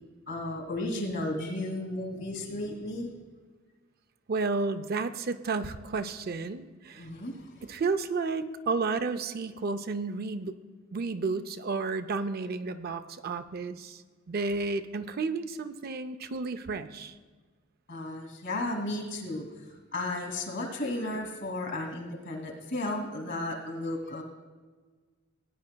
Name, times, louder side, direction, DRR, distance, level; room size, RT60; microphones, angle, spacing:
voice 1, 0.3-3.1 7.0-7.6 17.9-24.2, left 1 dB, 60° left, 2 dB, 2.4 m, -34 dB
voice 2, 4.3-7.1 7.6-10.6 10.9-14.0 14.3-17.1, right 4 dB, 50° right, 10 dB, 0.5 m, -32 dB
17.0 x 9.5 x 2.2 m, 1.4 s
head